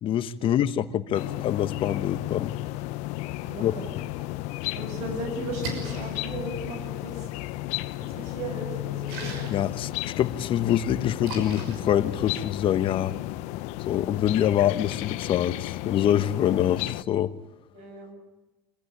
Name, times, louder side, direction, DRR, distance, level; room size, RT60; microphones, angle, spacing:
voice 1, 0.0-2.5 3.6-3.7 9.5-13.2 13.9-17.4, left 10 dB, 40° left, 1.1 m, -25 dB
sound 1, 1.1-17.0, left 18 dB, 60° left, 0.8 m, -33 dB
voice 2, 3.4-3.9 4.2-4.3 4.7-7.3 8.0-9.3 17.7-18.2, right 2 dB, 60° right, 7.6 m, -37 dB
Splash splatter, 5.4-12.7, right 2 dB, 75° right, 6.0 m, -42 dB
25.0 x 15.5 x 9.6 m
supercardioid pair, 105°, 13 cm